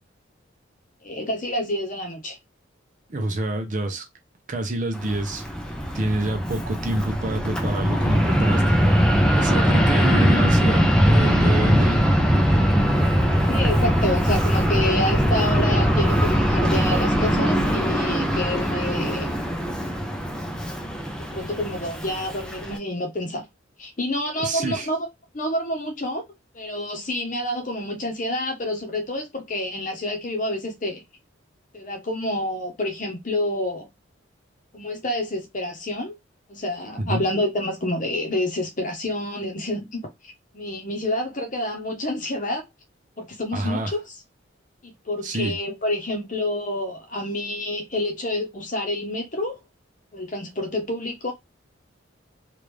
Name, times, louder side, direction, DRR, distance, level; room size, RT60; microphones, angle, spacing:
voice 1, 1.0-2.4 13.5-19.3 21.3-23.4 23.8-25.1 25.3-26.2 26.5-31.0 31.7-33.9 34.7-36.1 36.5-42.6 43.2-44.0 44.8-49.5 50.1-51.3, left 1 dB, 40° left, 0.9 m, -28 dB
voice 2, 3.1-4.0 4.5-5.4 5.9-8.9 9.4-12.0 24.4-24.9 37.0-37.2 43.5-43.9 45.2-45.6, right 2 dB, 40° right, 0.7 m, -27 dB
Fixed-wing aircraft airplane, 4.9-22.8, equal, 5° left, 0.5 m, -21 dB
3.4 x 2.5 x 3.1 m
head